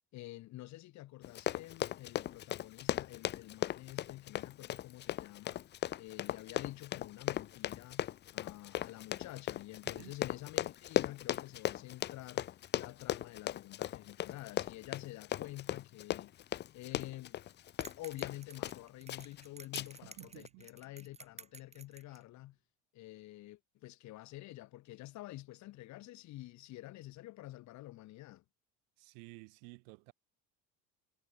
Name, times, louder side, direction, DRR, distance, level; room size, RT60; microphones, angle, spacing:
voice 1, 0.1-16.4 16.7-17.4 18.0-22.6 22.9-28.4, left 17 dB, 60° left, 3.5 m, -49 dB
Run, 1.2-18.8 19.1-19.4 19.7-20.1 20.4-20.5, left 12 dB, 35° left, 0.6 m, -37 dB
voice 2, 9.8-10.2 20.0-20.7 29.0-30.1, right 40 dB or more, 85° right, 6.4 m, -53 dB
sound 1, 17.8-22.2, right 5 dB, 20° right, 5.9 m, -52 dB
cardioid pair, 135°, 33 cm